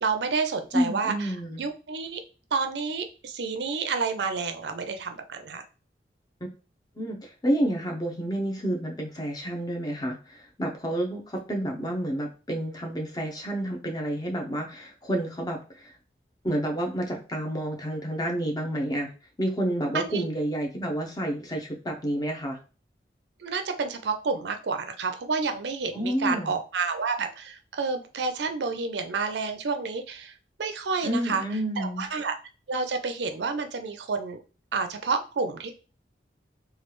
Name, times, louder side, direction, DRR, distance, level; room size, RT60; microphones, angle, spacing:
voice 1, 0.0-2.2 2.5-5.6 19.9-20.2 23.4-30.3 30.6-31.4 31.8-32.4 32.7-34.4 34.7-35.7, right 4 dB, 75° right, 7 dB, 0.5 m, -29 dB
voice 2, 0.7-1.6 7.0-15.9 16.4-19.1 19.4-22.6 25.9-26.5 31.0-32.0, right 1 dB, 20° left, 2 dB, 0.6 m, -29 dB
3.2 x 2.3 x 3.0 m, 0.34 s
head